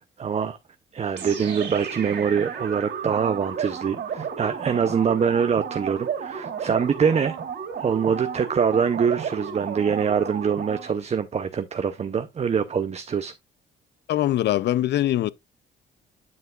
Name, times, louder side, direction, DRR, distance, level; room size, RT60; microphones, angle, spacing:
voice 1, 0.2-0.6 0.9-7.4 7.8-13.3, right 6 dB, 35° right, 0.6 m, -24 dB
sound 1, 1.2-11.0, right 7 dB, 60° right, 3.0 m, -33 dB
voice 2, 14.1-15.3, left 13 dB, 60° left, 0.4 m, -22 dB
9.4 x 5.7 x 2.3 m
cardioid pair, 90°, 20 cm